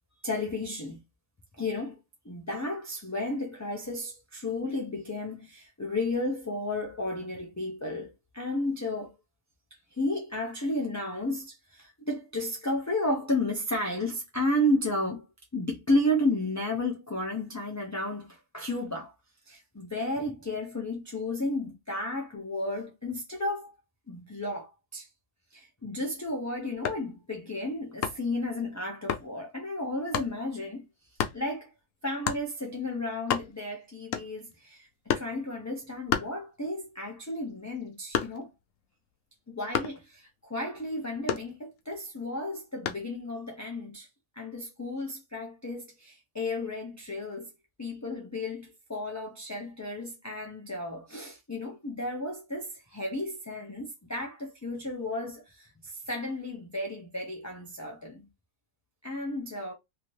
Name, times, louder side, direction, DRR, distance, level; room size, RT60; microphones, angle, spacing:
voice 1, 0.2-1.0 1.6-2.0 2.2-9.1 9.9-15.2 15.5-19.1 19.5-23.7 24.1-25.1 25.5-30.9 31.3-31.7 32.0-38.5 39.5-44.1 44.4-47.5 47.8-58.3 59.0-59.7, left 1 dB, 20° left, 0.4 m, -33 dB
sound 1, 26.7-27.1 28.0-28.4 29.1-29.3 30.1-30.4 31.2-31.4 32.2-32.5 32.9-33.0 33.2-33.7 34.1-34.5 35.1-35.4 36.1-36.8 37.2-38.6 39.7-40.1 41.3-41.9 42.9-43.1, left 8 dB, 85° left, 1.0 m, -31 dB
2.7 x 2.7 x 3.1 m
omnidirectional pair, 1.3 m